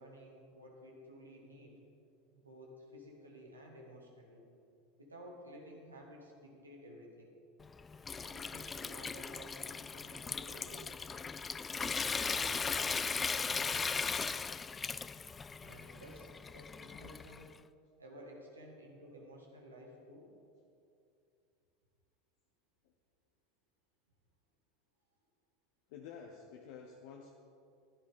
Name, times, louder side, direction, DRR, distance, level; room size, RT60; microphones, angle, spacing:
voice 1, 0.0-1.8 2.3-4.4 5.0-7.3 8.2-11.1 11.7-14.4 15.6-17.5 18.0-20.3, equal, 80° right, -1 dB, 1.9 m, -54 dB
Water tap faucet / Sink (filling or washing) / Trickle dribble, 7.6-17.5, left 5 dB, 20° left, 0.3 m, -38 dB
voice 2, 25.9-27.3, left 6 dB, 55° left, 1 dB, 0.9 m, -50 dB
15.0 x 11.5 x 3.6 m, 2.6 s
figure-of-eight pair, 80°, 0 cm